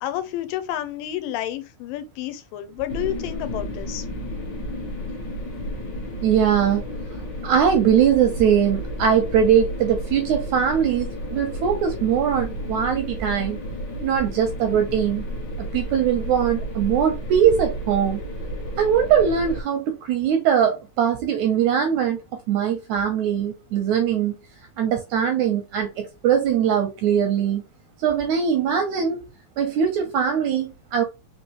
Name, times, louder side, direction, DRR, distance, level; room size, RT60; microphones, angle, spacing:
voice 1, 0.0-4.1, left 12 dB, 80° left, 2.3 m, -30 dB
sound 1, 2.9-19.6, equal, 60° left, 1.1 m, -32 dB
voice 2, 6.2-6.8 7.4-13.6 14.0-15.3 15.6-18.2 18.8-22.2 22.5-24.3 24.8-27.6 28.0-29.2 29.6-31.0, right 8 dB, 80° right, 1.7 m, -21 dB
5.2 x 3.1 x 2.9 m
omnidirectional pair, 4.0 m